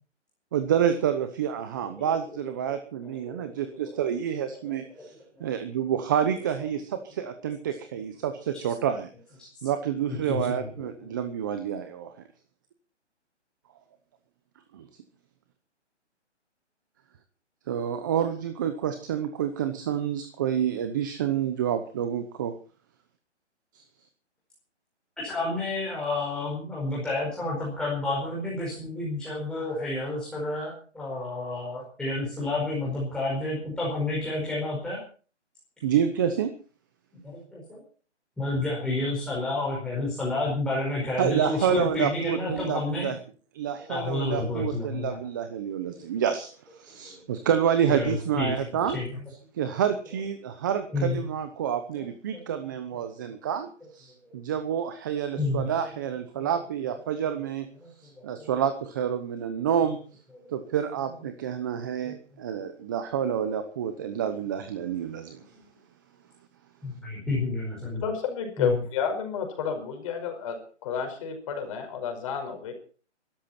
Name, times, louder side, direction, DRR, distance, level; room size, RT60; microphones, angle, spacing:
voice 1, 0.5-5.1 5.4-9.1 9.6-12.1 14.7-14.9 17.7-22.5 23.7-23.8 35.8-36.5 41.2-43.2 43.5-49.0 49.5-57.7 58.0-60.0 60.5-65.4, right 8 dB, 15° right, 9 dB, 0.8 m, -28 dB
voice 2, 2.7-3.5 3.8-4.0 4.6-4.7 5.0-5.1 10.1-11.1 25.2-35.0 37.2-37.8 38.4-43.1 43.9-45.2 45.9-46.0 47.0-47.1 47.9-48.5 48.9-49.1 50.9-51.2 52.0-52.1 54.2-54.3 55.4-55.7 56.0-56.5 57.8-58.1 58.4-58.5 62.0-62.2 66.8-68.0 68.6-68.8, left 2 dB, ahead, -5 dB, 5.1 m, -30 dB
voice 3, 67.9-72.7, left 6 dB, 30° left, 5 dB, 5.3 m, -30 dB
23.5 x 13.5 x 4.3 m, 0.40 s
hypercardioid pair, 165°, 36 cm